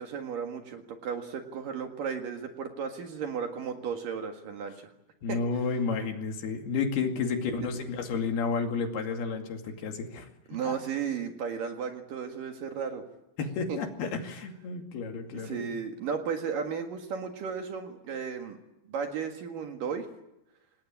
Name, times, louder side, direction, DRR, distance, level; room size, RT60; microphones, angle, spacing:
voice 1, 0.0-4.9 5.3-5.4 7.2-7.6 10.5-13.0 13.7-13.8 15.3-18.6 18.9-20.1, right 6 dB, 60° right, 4 dB, 3.2 m, -34 dB
voice 2, 5.2-10.3 10.6-10.8 13.4-15.7, left 5 dB, 70° left, 4 dB, 4.3 m, -31 dB
26.5 x 19.5 x 8.8 m, 0.92 s
omnidirectional pair, 4.7 m